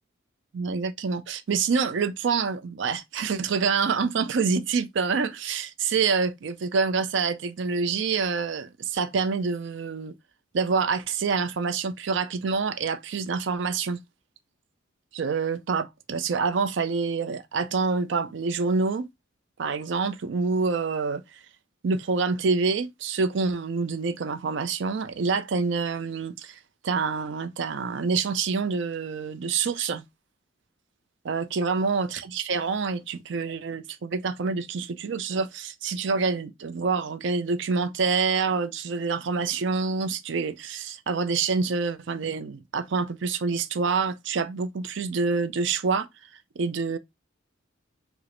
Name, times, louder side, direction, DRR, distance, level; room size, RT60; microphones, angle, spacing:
voice 1, 0.5-10.1 10.5-14.0 15.1-19.1 19.6-21.2 21.8-26.5 26.8-30.0 31.2-46.1 46.6-47.0, right 5 dB, 60° right, 0.4 m, -27 dB
4.8 x 2.0 x 3.0 m
head